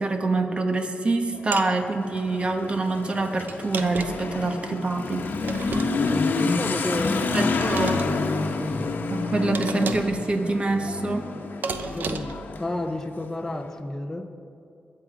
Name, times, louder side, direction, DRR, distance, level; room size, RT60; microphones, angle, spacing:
voice 1, 0.0-5.3 7.3-8.0 9.1-11.4, right 3 dB, 35° right, 6 dB, 1.2 m, -25 dB
Motorcycle / Accelerating revving vroom, 1.3-13.7, left 3 dB, 70° left, 1.1 m, -28 dB
sound 1, 1.5-1.7 3.5-4.3 5.4-6.2 7.5-8.1 9.5-10.2 11.6-12.4, right 4 dB, 65° right, 0.7 m, -33 dB
voice 2, 5.7-8.2 8.6-8.8 11.9-12.3 12.6-14.3, left 1 dB, 10° left, 4 dB, 0.8 m, -32 dB
20.5 x 7.8 x 5.1 m, 2.5 s
wide cardioid pair, 110°, 3 cm